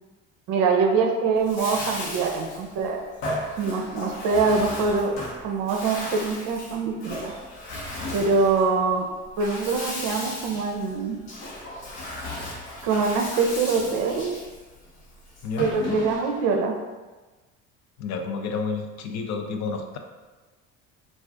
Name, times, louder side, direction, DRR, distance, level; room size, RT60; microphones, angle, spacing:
voice 1, 0.5-3.0 3.6-5.1 5.4-7.3 8.1-9.1 9.4-11.2 12.8-14.3 15.6-16.7, right 4 dB, 55° right, 3 dB, 0.6 m, -24 dB
Bathtub (filling or washing), 1.3-16.5, left 1 dB, 70° left, 0.9 m, -36 dB
voice 2, 18.0-20.0, left 4 dB, 45° left, 4 dB, 0.5 m, -30 dB
2.4 x 2.4 x 3.4 m, 1.2 s
hypercardioid pair, 70°, 39 cm